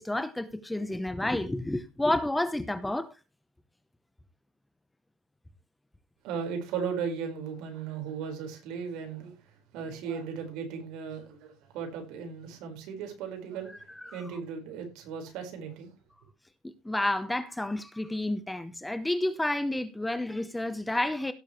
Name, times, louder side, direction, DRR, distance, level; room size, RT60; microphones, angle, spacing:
voice 1, 0.0-3.1 14.0-14.2 16.6-21.3, left 1 dB, 5° left, 0.8 m, -30 dB
voice 2, 6.2-9.4 9.7-15.9, right 6 dB, 70° right, 4.6 m, -36 dB
17.0 x 7.2 x 3.1 m
cardioid pair, 150°, 0 cm